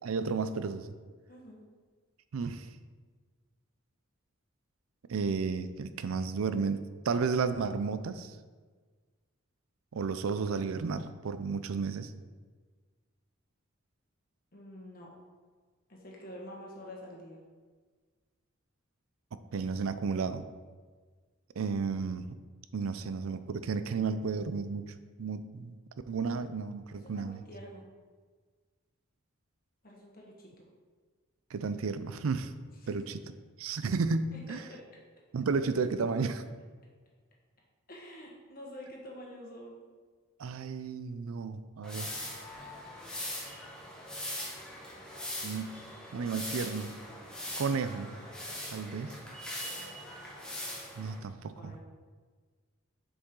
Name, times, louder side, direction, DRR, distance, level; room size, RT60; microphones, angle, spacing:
voice 1, 0.0-0.9 2.3-2.7 5.1-8.3 9.9-12.1 19.5-20.5 21.6-22.3 22.7-24.9 25.2-25.7 26.1-27.4 31.5-32.5 32.9-33.2 33.6-34.6 35.3-36.4 40.4-42.1 45.4-45.7 46.1-46.9 47.5-48.2 48.7-49.1 51.0-51.8, right 5 dB, 85° right, 12 dB, 0.4 m, -32 dB
voice 2, 14.5-15.1 15.9-17.4 27.0-27.8 29.8-30.6 32.8-32.9 34.3-34.8 37.9-39.8 49.7-50.3 51.5-51.8, equal, 45° left, -2 dB, 1.5 m, -48 dB
sound 1, 41.8-51.2, left 1 dB, 5° left, 1.0 m, -41 dB
6.8 x 5.3 x 3.8 m, 1.5 s
head